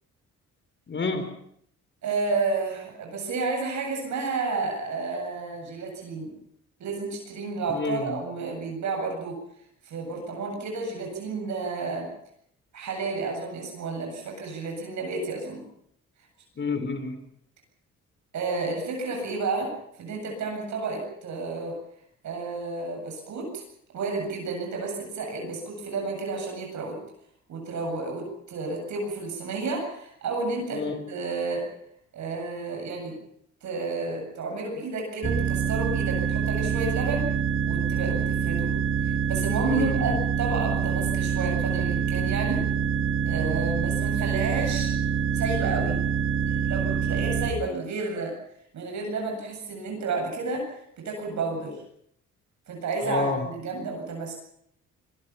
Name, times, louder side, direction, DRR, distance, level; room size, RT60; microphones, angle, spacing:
voice 1, 0.9-1.3 7.7-8.1 16.6-17.2 30.7-31.0 39.7-40.1 53.0-53.4, left 3 dB, 40° left, 9 dB, 4.4 m, -29 dB
voice 2, 2.0-6.3 6.8-9.4 9.8-12.1 12.7-15.6 18.3-19.7 20.0-21.8 22.2-23.6 23.9-27.0 27.5-31.7 32.1-33.2 33.6-37.3 37.6-38.7 39.0-42.6 43.2-44.9 45.3-46.0 46.5-48.3 48.7-50.7 51.0-51.8 52.7-54.3, right 3 dB, 70° right, 1 dB, 7.9 m, -31 dB
sound 1, 35.2-47.5, right 7 dB, 45° right, 2.6 m, -26 dB
24.5 x 22.5 x 5.9 m, 0.68 s
cardioid pair, 90°, 30 cm